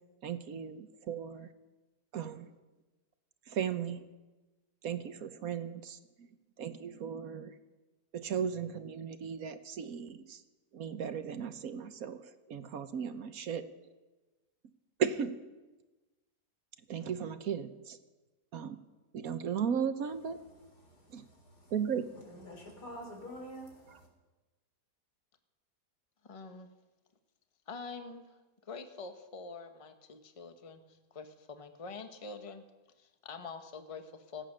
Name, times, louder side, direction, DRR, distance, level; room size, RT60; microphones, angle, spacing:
voice 1, 0.2-1.5 2.1-2.5 3.5-4.1 4.8-6.3 6.6-7.5 8.1-10.4 10.7-13.7 15.0-15.4 16.9-18.0 18.5-18.8 19.1-20.4 21.1-21.3 21.7-22.0 23.9-24.0, right 7 dB, 65° right, 10 dB, 1.3 m, -36 dB
voice 2, 20.8-21.7 22.3-24.1, equal, 85° left, 2 dB, 4.3 m, -48 dB
voice 3, 26.2-26.7 27.7-32.6 33.0-34.4, left 4 dB, 25° left, 7 dB, 1.0 m, -46 dB
25.5 x 8.5 x 6.4 m, 1.2 s
omnidirectional pair, 1.7 m